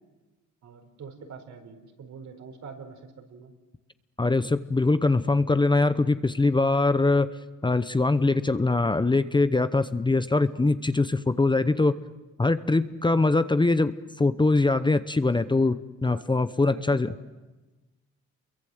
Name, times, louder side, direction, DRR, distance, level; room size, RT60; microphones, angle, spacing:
voice 1, 0.6-3.5 13.1-13.3 16.0-16.3 16.6-17.2, right 5 dB, 70° right, 6 dB, 4.7 m, -44 dB
voice 2, 4.2-7.3 7.6-11.9 12.4-13.9 14.2-17.1, left 3 dB, 15° left, 12 dB, 0.9 m, -22 dB
28.5 x 23.0 x 8.0 m, 1.1 s
cardioid pair, 90°, 30 cm